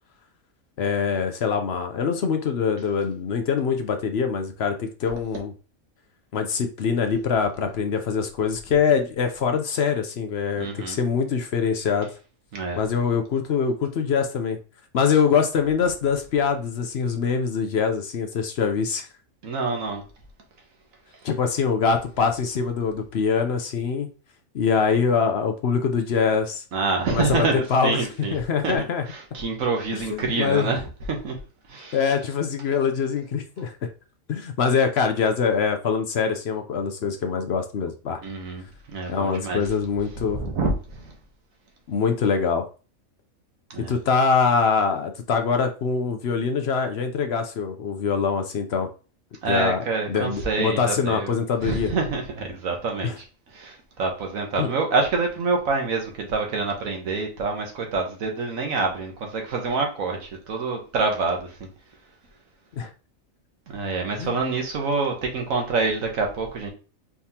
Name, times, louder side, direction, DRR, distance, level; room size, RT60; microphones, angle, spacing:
voice 1, 0.8-5.5 6.3-12.1 12.8-14.6 14.9-19.1 21.2-24.1 24.5-26.6 27.1-29.1 29.9-30.7 31.9-33.7 34.3-38.2 39.1-40.4 41.9-42.7 43.8-48.9 49.5-51.9 53.0-53.2 54.6-54.7 62.8-62.9 64.2-64.4, left 6 dB, 60° left, 0.8 m, -24 dB
voice 2, 10.6-11.0 12.5-12.8 19.4-20.0 26.7-28.3 28.6-28.7 29.1-30.8 31.1-31.3 31.7-32.0 38.2-39.6 40.4-41.1 43.7-43.9 49.4-51.3 51.6-53.2 53.5-61.5 63.7-66.7, right 3 dB, 85° right, 1.5 m, -26 dB
4.5 x 3.6 x 2.8 m
omnidirectional pair, 1.4 m